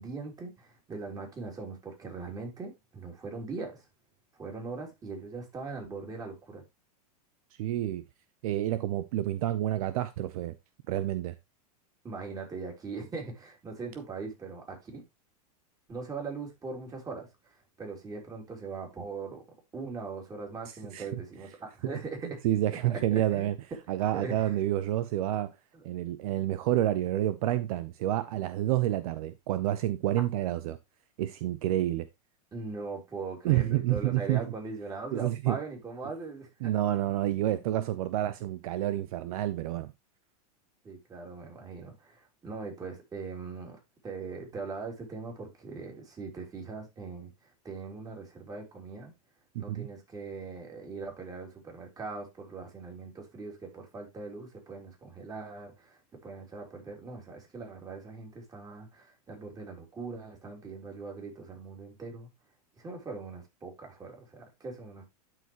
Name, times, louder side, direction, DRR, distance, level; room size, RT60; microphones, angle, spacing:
voice 1, 0.0-3.8 4.4-6.6 12.0-15.0 15.9-19.4 19.7-22.4 23.1-23.5 24.1-24.6 25.7-25.8 32.5-36.5 40.8-43.8 44.0-49.1 49.6-62.3 62.8-65.0, right 4 dB, 20° right, 3.3 m, -40 dB
voice 2, 7.6-8.0 8.4-10.5 10.9-11.3 20.9-21.2 22.4-23.6 23.9-25.5 25.8-30.8 31.2-32.1 33.4-34.4 35.1-35.6 36.6-39.9 49.5-49.9, right 13 dB, 60° right, 0.7 m, -29 dB
12.0 x 4.8 x 3.0 m
supercardioid pair, 135°, 20 cm